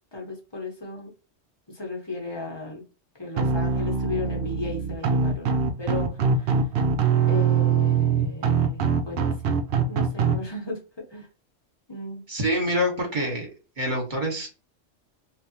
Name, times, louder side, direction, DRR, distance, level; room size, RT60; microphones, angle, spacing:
voice 1, 0.1-1.1 1.7-2.8 3.2-6.1 6.4-6.6 7.3-9.5 9.9-10.8 11.1-11.3 11.9-12.2, left 3 dB, 20° left, 0 dB, 1.0 m, -35 dB
sound 1, 3.4-10.4, right 6 dB, 60° right, 0.7 m, -23 dB
voice 2, 12.3-13.5 13.8-14.5, equal, 40° right, 0 dB, 1.4 m, -26 dB
3.3 x 2.6 x 2.8 m, 0.32 s
omnidirectional pair, 1.3 m